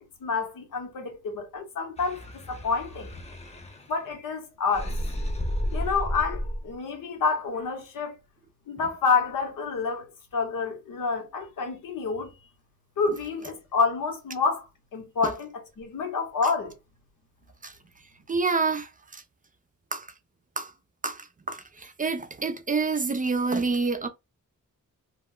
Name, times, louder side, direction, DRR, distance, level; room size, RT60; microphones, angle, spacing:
voice 1, 0.2-3.1 3.9-5.0 5.7-8.2 8.7-12.3 13.0-14.7 14.9-15.5 15.8-16.7, left 4 dB, 85° left, 1.0 m, -28 dB
sound 1, 2.0-4.1 4.7-6.8, equal, 20° left, 0.5 m, -32 dB
voice 2, 18.3-19.2 19.9-20.1 20.6-20.7 21.0-24.1, right 4 dB, 25° right, 0.4 m, -28 dB
2.3 x 2.1 x 3.6 m
wide cardioid pair, 100°, 32 cm